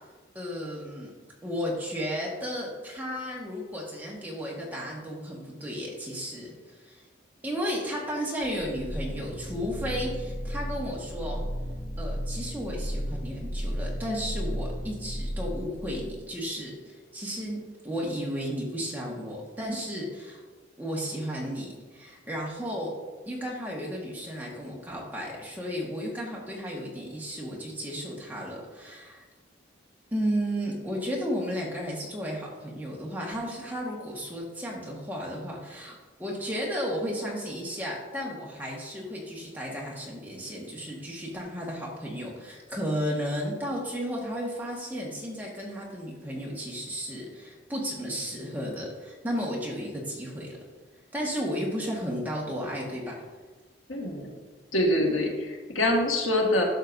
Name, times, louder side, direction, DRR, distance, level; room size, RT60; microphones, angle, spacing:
voice 1, 0.3-1.1 1.4-7.1 7.4-11.4 12.0-17.6 17.8-20.4 20.8-22.9 23.3-29.2 30.1-50.6 51.1-53.2, equal, 10° right, -3 dB, 1.5 m, -33 dB
sound 1, 8.4-16.3, equal, 40° left, 0.8 m, -34 dB
voice 2, 53.9-54.3 54.7-56.6, left 1 dB, 85° left, 0 dB, 1.7 m, -25 dB
11.5 x 6.6 x 2.6 m, 1.3 s
head